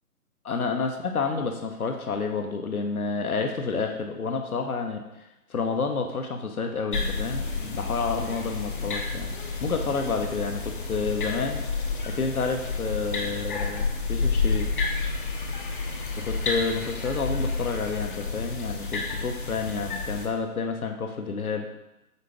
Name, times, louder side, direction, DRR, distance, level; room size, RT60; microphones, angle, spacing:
voice 1, 0.4-9.3 9.6-14.7 16.1-21.7, left 4 dB, 70° left, 4 dB, 1.0 m, -30 dB
sound 1, 6.9-20.3, left 4 dB, 35° left, 0.8 m, -30 dB
8.3 x 4.1 x 3.5 m, 0.94 s
figure-of-eight pair, 140°, 45 cm